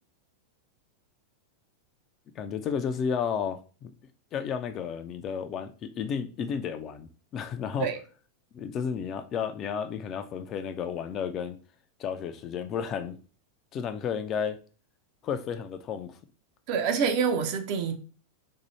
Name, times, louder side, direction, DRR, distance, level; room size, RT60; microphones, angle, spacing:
voice 1, 2.4-3.9 4.3-7.9 8.5-11.6 12.0-13.2 13.7-14.6 15.2-16.2, left 7 dB, 30° left, 0.4 m, -32 dB
voice 2, 16.7-18.0, right 6 dB, 45° right, 0.6 m, -26 dB
2.7 x 2.6 x 4.3 m
figure-of-eight pair, 90°, 0 cm